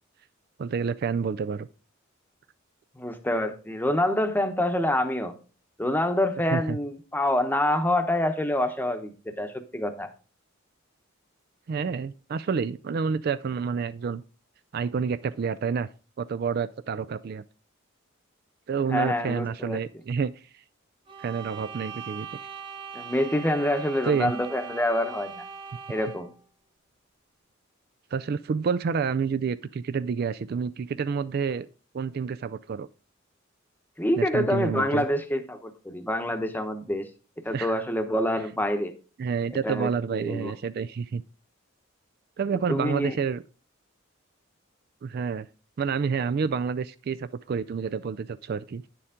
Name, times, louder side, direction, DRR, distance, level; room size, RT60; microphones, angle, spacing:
voice 1, 0.6-1.7 6.5-6.8 11.7-14.2 14.7-15.9 16.2-17.4 18.7-20.3 21.2-22.3 24.0-24.3 28.1-31.7 31.9-32.9 34.2-35.1 37.5-37.8 39.2-41.2 42.4-43.4 45.0-45.5 45.8-48.9, right 6 dB, 50° right, 0.3 m, -29 dB
voice 2, 3.0-5.3 5.8-10.1 18.9-19.8 22.9-25.4 25.9-26.3 34.0-37.1 37.4-38.9 39.5-39.9 40.2-40.5 42.7-43.2, left 1 dB, 10° left, 0.9 m, -26 dB
sound 1, 21.1-26.4, right 6 dB, 25° right, 0.8 m, -41 dB
9.7 x 6.9 x 3.6 m
head